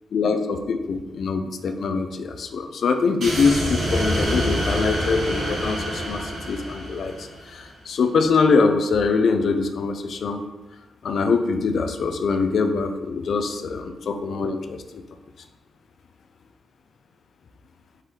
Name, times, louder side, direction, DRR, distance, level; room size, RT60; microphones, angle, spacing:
voice 1, 0.1-10.4 11.0-14.8, left 4 dB, 70° left, 6 dB, 0.4 m, -23 dB
sound 1, 3.2-7.6, equal, 70° right, 1.4 m, -26 dB
4.4 x 3.7 x 3.1 m, 1.1 s
cardioid pair, 65°, 0 cm